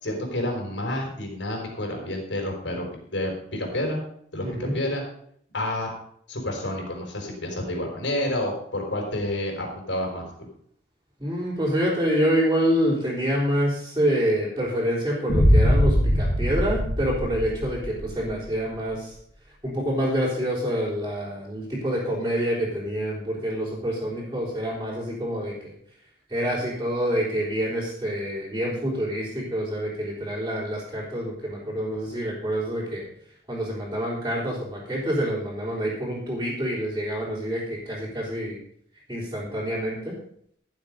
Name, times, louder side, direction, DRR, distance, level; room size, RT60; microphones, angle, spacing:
voice 1, 0.0-2.8 3.1-4.0 4.3-5.0 5.5-5.9 6.3-10.5, left 1 dB, 75° left, 1 dB, 4.9 m, -29 dB
voice 2, 4.4-4.8 11.2-19.2 19.6-25.7 26.3-33.1 33.5-38.6 39.1-40.2, equal, 15° right, -8 dB, 3.9 m, -27 dB
sound 1, 15.3-18.3, equal, 50° left, 5.3 m, -21 dB
15.0 x 7.4 x 5.3 m, 0.65 s
head